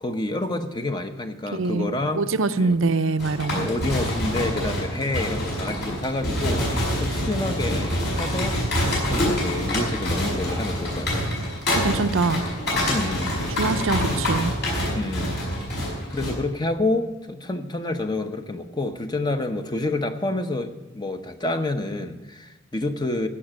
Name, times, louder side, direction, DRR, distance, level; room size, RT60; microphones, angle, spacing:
voice 1, 0.0-2.3 2.6-2.8 3.5-8.6 9.1-11.2 12.9-13.4 14.9-15.4 16.1-23.3, left 2 dB, 20° left, 7 dB, 0.8 m, -28 dB
voice 2, 1.5-3.7 11.7-12.4 13.6-14.5, right 3 dB, 75° right, 10 dB, 0.6 m, -24 dB
sound 1, 3.2-16.3, equal, 55° left, 5.5 m, -26 dB
15.5 x 6.0 x 9.9 m, 1.2 s
head